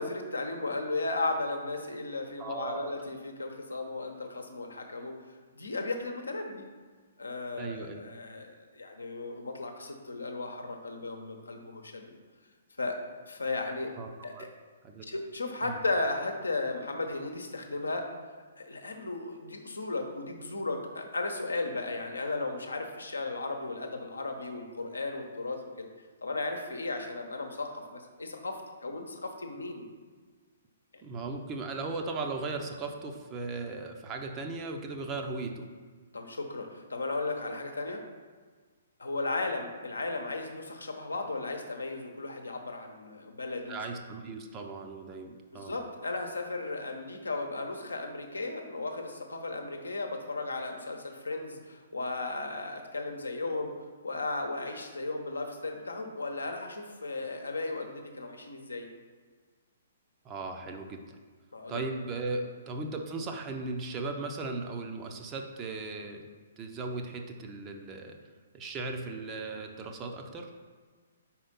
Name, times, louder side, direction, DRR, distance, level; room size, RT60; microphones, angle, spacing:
voice 1, 0.0-5.1 5.6-6.6 7.2-12.1 12.8-13.0 13.3-13.9 14.2-14.5 15.1-18.1 18.6-25.9 26.2-29.9 36.1-38.0 39.0-43.8 45.5-53.7 54.0-58.9 61.5-61.8 62.3-62.4, left 2 dB, 75° left, 4 dB, 0.9 m, -35 dB
voice 2, 2.4-2.9 7.6-8.0 14.0-14.5 14.8-15.1 15.6-15.8 31.0-35.7 43.7-45.8 60.2-61.2 61.7-66.2 66.6-68.2 68.5-70.5, right 3 dB, 20° right, 3 dB, 0.7 m, -37 dB
5.0 x 4.3 x 5.6 m, 1.5 s
figure-of-eight pair, 125°, 0 cm